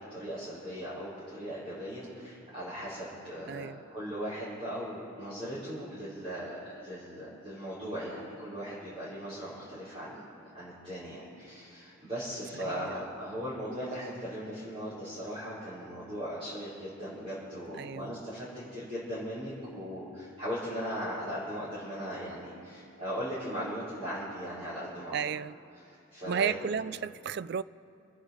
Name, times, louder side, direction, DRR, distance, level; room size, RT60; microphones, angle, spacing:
voice 1, 0.1-10.2 10.5-18.5 18.7-25.2 25.9-26.6, equal, 25° right, 5.4 m, -38 dB
voice 2, 3.5-3.8 12.6-12.9 17.8-18.2 25.1-25.6 26.3-27.6, right 7 dB, 50° right, 0.3 m, -33 dB
29.0 x 10.0 x 4.9 m
head